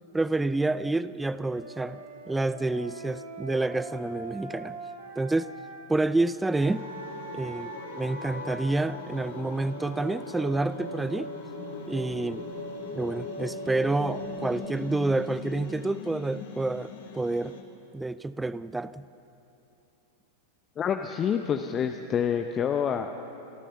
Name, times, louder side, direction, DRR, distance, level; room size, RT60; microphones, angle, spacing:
voice 1, 0.1-4.8 5.2-5.5 5.9-6.9 7.3-11.3 11.9-12.4 12.9-17.5 17.9-19.0, right 2 dB, 10° right, 16 dB, 0.4 m, -28 dB
Wind instrument woodwind instrument, 1.4-5.8 6.4-8.7, right 2 dB, 75° right, 6.7 m, -42 dB
sound 1, 6.6-17.6, left 5 dB, 55° left, 2.0 m, -41 dB
sound 2, 8.3-14.7, right 3 dB, 50° right, 1.7 m, -42 dB
voice 2, 20.8-23.1, left 8 dB, 25° left, 7 dB, 0.8 m, -27 dB
28.5 x 13.5 x 6.9 m, 3.0 s
figure-of-eight pair, 90°, 0 cm